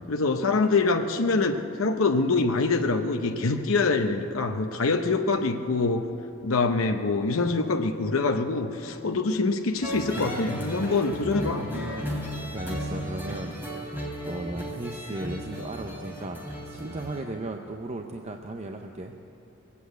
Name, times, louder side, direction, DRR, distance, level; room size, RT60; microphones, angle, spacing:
voice 1, 0.1-6.0 6.4-11.7, left 3 dB, 70° left, 5 dB, 0.8 m, -25 dB
sound 1, 9.8-17.2, equal, 10° right, 3.1 m, -35 dB
voice 2, 12.5-13.6 14.2-16.4 16.6-19.2, right 2 dB, 30° right, 4 dB, 0.6 m, -36 dB
21.0 x 8.4 x 8.1 m, 2.8 s
head